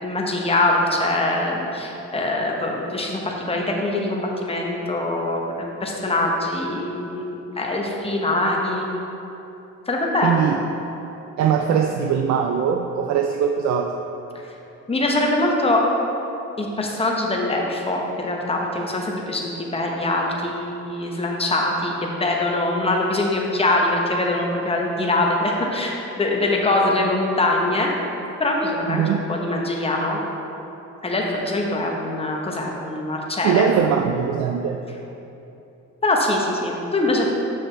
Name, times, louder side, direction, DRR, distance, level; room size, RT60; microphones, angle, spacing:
voice 1, 0.0-5.5 5.8-8.9 9.9-10.6 14.9-15.8 16.6-27.9 28.4-30.2 31.0-33.7 36.0-37.3, left 2 dB, 20° left, -1 dB, 1.0 m, -23 dB
voice 2, 10.2-10.6 11.4-13.9 28.9-29.2 33.4-34.8, right 7 dB, 65° right, 4 dB, 0.4 m, -21 dB
6.3 x 6.3 x 3.3 m, 3.0 s
cardioid pair, 90°, 30 cm